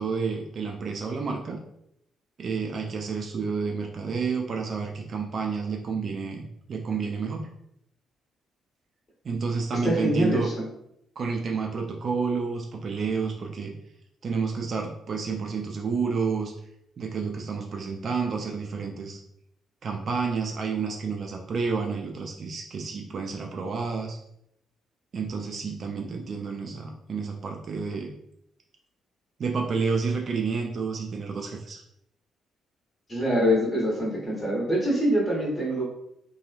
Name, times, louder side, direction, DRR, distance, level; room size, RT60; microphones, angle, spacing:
voice 1, 0.0-1.6 2.4-7.4 9.2-10.5 11.2-13.7 14.2-16.5 17.0-19.2 19.8-24.2 25.1-28.1 29.4-31.8, right 5 dB, 45° right, 2 dB, 0.3 m, -30 dB
voice 2, 9.8-10.6 33.1-35.8, equal, 25° left, -4 dB, 1.2 m, -24 dB
2.9 x 2.3 x 2.4 m, 0.76 s
figure-of-eight pair, 40°, 0 cm